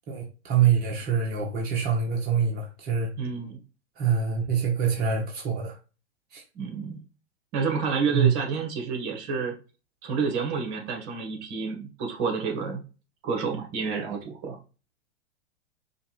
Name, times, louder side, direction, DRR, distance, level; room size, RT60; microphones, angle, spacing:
voice 1, 0.1-3.1 4.0-5.8 6.3-6.4 8.1-8.3, right 7 dB, 30° right, 1.1 m, -25 dB
voice 2, 3.2-3.6 6.5-7.0 7.5-9.5 10.0-12.8 13.2-14.6, right 5 dB, 45° right, 1.5 m, -29 dB
5.1 x 2.4 x 3.2 m
hypercardioid pair, 105°, 33 cm